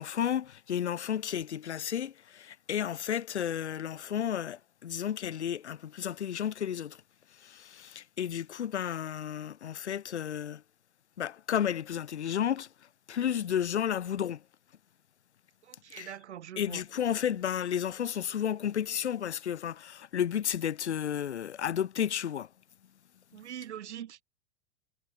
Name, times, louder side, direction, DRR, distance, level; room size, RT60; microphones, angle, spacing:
voice 1, 0.0-7.0 7.4-10.6 11.2-12.7 13.1-14.4 15.9-16.1 16.6-22.5, left 9 dB, 75° left, 2.5 m, -32 dB
voice 2, 15.8-16.8 23.3-24.2, right 10 dB, 75° right, 1.5 m, -42 dB
hypercardioid pair, 100°, 34 cm